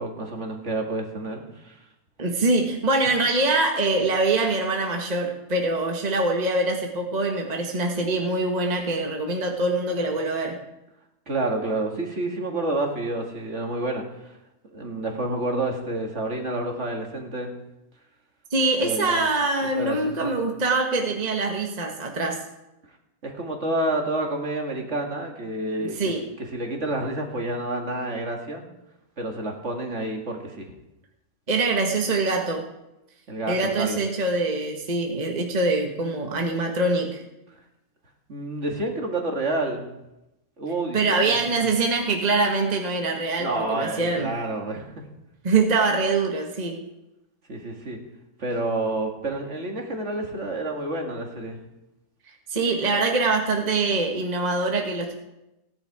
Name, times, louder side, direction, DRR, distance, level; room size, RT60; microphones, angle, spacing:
voice 1, 0.0-1.8 11.3-14.0 14.7-17.5 18.8-19.2 19.8-20.3 23.2-26.0 26.4-28.6 29.2-30.7 33.3-34.0 38.3-39.8 40.6-41.0 41.2-41.7 43.4-45.1 47.5-48.0 48.4-51.6, right 2 dB, 50° right, 2 dB, 2.3 m, -29 dB
voice 2, 2.2-10.6 18.5-22.4 25.8-26.2 31.5-32.6 33.5-37.2 40.9-44.3 45.4-46.8 52.5-55.1, right 3 dB, 30° right, 2 dB, 1.4 m, -24 dB
16.5 x 10.5 x 4.8 m, 0.92 s
omnidirectional pair, 1.5 m